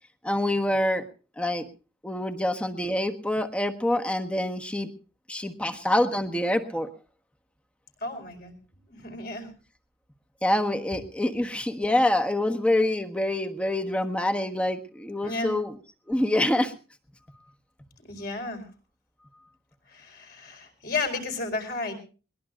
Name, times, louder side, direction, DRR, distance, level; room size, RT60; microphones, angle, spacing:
voice 1, 0.2-1.1 1.4-1.7 2.0-4.9 5.3-6.9 10.4-15.7 16.1-16.7, left 1 dB, 5° left, 6 dB, 1.3 m, -26 dB
voice 2, 8.0-8.6 8.9-9.5 15.2-15.5 18.0-18.7 19.9-21.9, left 3 dB, 55° left, 4 dB, 4.7 m, -33 dB
21.5 x 20.0 x 2.5 m, 0.35 s
head